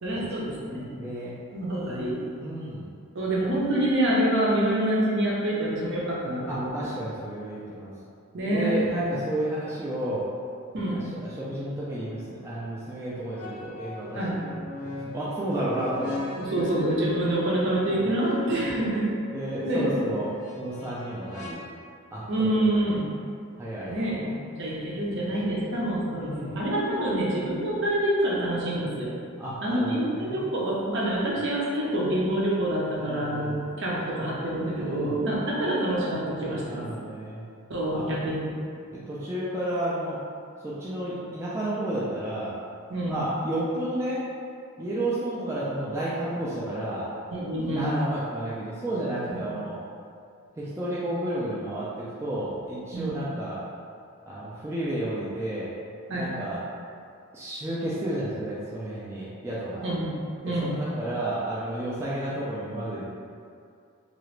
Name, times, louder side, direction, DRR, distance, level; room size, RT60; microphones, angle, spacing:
voice 1, 0.0-0.9 1.5-2.2 3.1-6.9 8.3-9.0 10.7-11.0 14.2-14.4 16.4-19.1 19.6-19.9 22.3-23.1 23.9-24.2 24.6-29.1 29.6-36.9 37.7-38.5 42.9-43.2 47.3-47.9 49.3-49.4 52.9-53.2 56.1-56.3 59.8-60.1 60.4-60.8, right 1 dB, 55° right, -5 dB, 0.6 m, -26 dB
voice 2, 0.9-1.4 2.4-2.9 6.5-7.9 8.5-10.3 11.2-14.4 15.0-16.1 17.9-18.1 18.7-18.9 19.3-20.3 20.6-21.6 22.1-22.8 23.6-24.6 24.8-25.5 26.2-26.6 29.4-30.4 33.0-33.7 34.8-35.3 36.6-37.4 37.9-38.1 38.9-40.2 40.6-42.6 43.1-44.2 44.8-47.1 47.7-49.8 50.6-53.6 54.3-55.7 56.1-56.6 57.3-59.8 60.4-63.1, right 1 dB, 10° right, -9 dB, 0.3 m, -32 dB
sound 1, 12.0-12.2 13.3-21.5, left 2 dB, 85° left, 0.7 m, -39 dB
2.8 x 2.4 x 3.1 m, 2.3 s
head